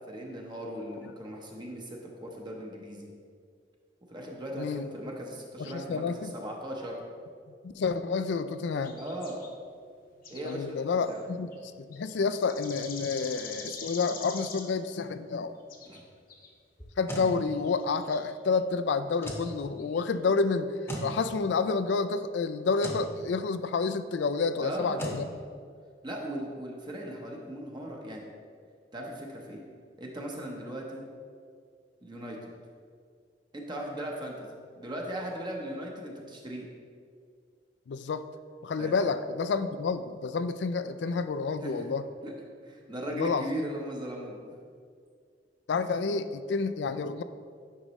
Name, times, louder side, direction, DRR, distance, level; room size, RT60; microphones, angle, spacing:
voice 1, 0.1-3.1 4.1-7.0 8.9-9.4 10.3-11.2 15.8-16.0 24.6-25.1 26.0-28.2 28.9-29.6 30.0-31.0 32.0-32.4 33.5-36.7 38.8-39.0 41.6-41.9 42.2-42.3 42.6-44.4, equal, 25° right, -1 dB, 0.9 m, -38 dB
voice 2, 5.6-6.3 7.6-9.0 10.4-11.5 11.9-15.5 17.0-20.7 21.0-25.2 37.9-38.2 38.6-42.0 43.1-43.7 45.7-47.2, left 4 dB, 80° left, 12 dB, 0.4 m, -29 dB
sound 1, 8.8-9.5 10.1-10.6 11.0-11.2 11.5-11.6 11.9-14.8 15.6-16.0 16.3-16.5 17.5-18.3 19.1-19.3 19.8-20.0, left 5 dB, 55° left, 0.8 m, -44 dB
sound 2, 16.8-17.3 19.2-19.5 20.9-21.1 22.8-23.1 25.0-25.2, equal, 15° left, 0.9 m, -36 dB
9.7 x 5.2 x 3.1 m, 2.2 s
head